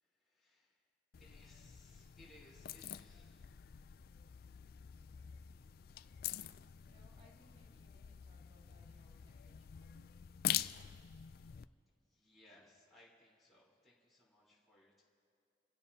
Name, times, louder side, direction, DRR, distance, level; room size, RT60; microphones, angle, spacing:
voice 1, 0.0-0.9 1.2-3.7 12.0-15.0, left 1 dB, ahead, -8 dB, 3.7 m, -65 dB
sound 1, 1.1-11.6, left 11 dB, 50° left, 0.3 m, -45 dB
voice 2, 5.4-5.9 6.8-10.4, left 1 dB, 30° right, -2 dB, 2.4 m, -69 dB
28.0 x 17.0 x 2.8 m, 2.5 s
head